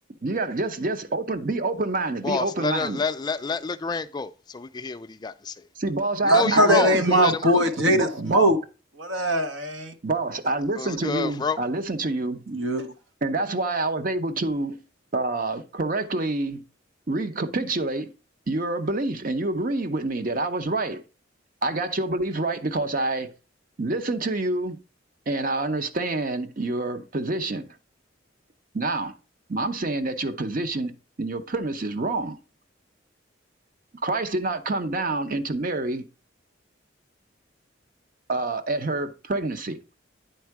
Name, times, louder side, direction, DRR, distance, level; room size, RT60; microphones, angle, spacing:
voice 1, 0.2-3.0 5.8-7.5 7.9-8.5 10.0-12.4 13.2-14.8 15.1-16.6 17.1-18.1 18.5-21.0 21.6-23.3 23.8-24.8 25.3-27.7 28.7-29.1 29.5-30.9 31.2-32.4 34.0-36.1 38.3-39.8, right 2 dB, 45° right, 0.7 m, -27 dB
voice 2, 2.2-5.5 6.2-7.3 10.8-11.6, left 5 dB, 20° left, 0.3 m, -28 dB
voice 3, 6.3-8.6 9.0-9.9 12.5-12.9, right 1 dB, 75° right, 1.2 m, -21 dB
9.3 x 4.4 x 4.7 m
head